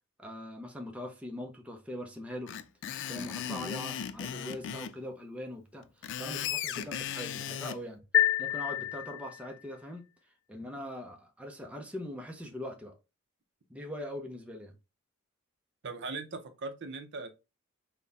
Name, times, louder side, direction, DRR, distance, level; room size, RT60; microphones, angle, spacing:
voice 1, 0.2-2.5 3.1-5.9 6.2-8.0 8.4-10.0 10.5-13.0 13.7-14.7, left 1 dB, 5° right, 0.6 m, -41 dB
Screech, 2.5-4.9 5.8-7.8, left 9 dB, 60° left, 0.3 m, -36 dB
sound 1, 8.1-9.6, left 11 dB, 80° left, 0.7 m, -28 dB
voice 2, 15.8-17.3, right 3 dB, 55° right, 0.6 m, -39 dB
4.0 x 2.2 x 3.4 m
head